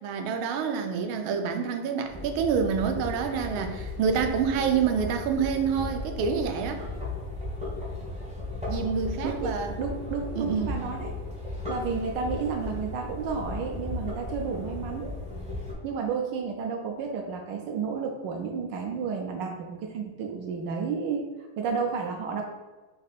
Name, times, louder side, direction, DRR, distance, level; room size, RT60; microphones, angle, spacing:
voice 1, 0.0-6.8 8.7-9.7 10.4-10.8, right 6 dB, 90° right, 5 dB, 1.4 m, -27 dB
sound 1, 2.0-15.7, left 2 dB, 10° right, 0.4 m, -36 dB
voice 2, 9.2-11.1 11.7-15.1 15.8-21.3 21.6-22.4, right 5 dB, 75° right, 2 dB, 1.2 m, -31 dB
4.1 x 2.6 x 4.1 m, 1.2 s
omnidirectional pair, 2.2 m